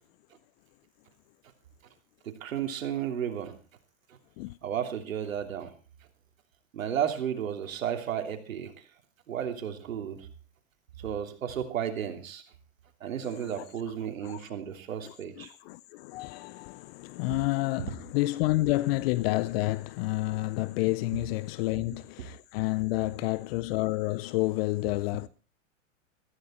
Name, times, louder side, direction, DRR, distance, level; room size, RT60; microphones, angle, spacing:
voice 1, 2.2-3.6 4.6-5.7 6.7-8.8 9.3-10.3 11.0-12.4 13.0-15.5 21.7-21.8, right 9 dB, 85° right, 3.1 m, -33 dB
voice 2, 13.2-13.7 14.2-14.4 15.0-25.3, left 19 dB, 50° left, 0.6 m, -30 dB
14.5 x 14.5 x 4.4 m
hypercardioid pair, 120°, 39 cm